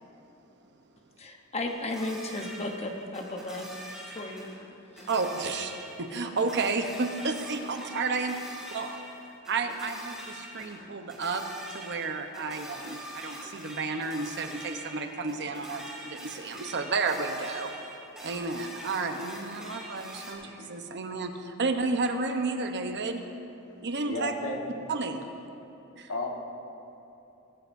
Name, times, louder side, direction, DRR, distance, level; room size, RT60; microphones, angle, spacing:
voice 1, 1.2-3.8 4.1-4.5 4.9-5.1, left 2 dB, 30° left, 3 dB, 0.9 m, -35 dB
sound 1, 1.7-4.7 5.0-20.3, right 1 dB, 5° right, 2.3 m, -44 dB
voice 2, 5.1-5.7 6.0-8.9 9.5-11.4 11.7-17.7 18.2-23.2 23.8-24.3 24.9-25.2 26.0-26.1, right 3 dB, 55° right, 6 dB, 0.9 m, -31 dB
voice 3, 24.1-24.6 26.1-26.3, left 2 dB, 75° left, 0 dB, 1.6 m, -33 dB
18.0 x 16.0 x 2.7 m, 2.9 s
head